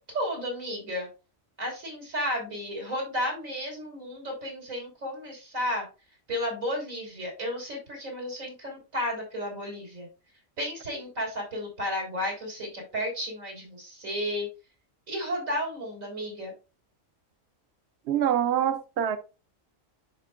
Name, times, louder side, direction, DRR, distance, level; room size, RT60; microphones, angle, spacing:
voice 1, 0.1-1.1 1.6-5.9 6.3-10.1 10.6-14.5 15.1-16.5, equal, 85° right, 4.2 m, -33 dB
voice 2, 18.1-19.2, right 10 dB, 60° right, 0.8 m, -25 dB
10.5 x 5.2 x 2.4 m
omnidirectional pair, 1.4 m